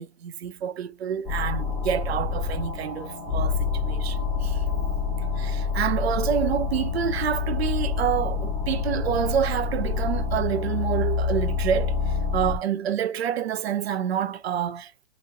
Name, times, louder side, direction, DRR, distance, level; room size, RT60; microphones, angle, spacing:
voice 1, 0.0-4.6 5.4-15.1, right 9 dB, 65° right, 0.6 m, -28 dB
sound 1, 1.2-12.6, left 5 dB, 10° left, 0.8 m, -27 dB
2.9 x 2.0 x 3.7 m
hypercardioid pair, 140°, 34 cm